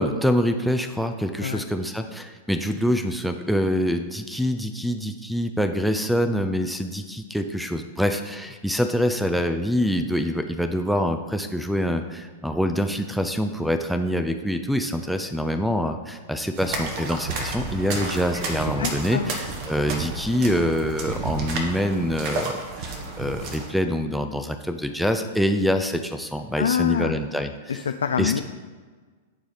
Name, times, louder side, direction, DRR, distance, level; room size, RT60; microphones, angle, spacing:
voice 1, 0.0-27.8 28.2-28.4, equal, ahead, 7 dB, 0.5 m, -25 dB
sound 1, 16.6-23.7, right 3 dB, 45° right, 1.4 m, -31 dB
voice 2, 18.6-19.3 26.6-27.2 27.7-28.4, left 7 dB, 70° left, 8 dB, 0.3 m, -26 dB
10.5 x 4.8 x 4.0 m, 1.4 s
figure-of-eight pair, 100°, 0 cm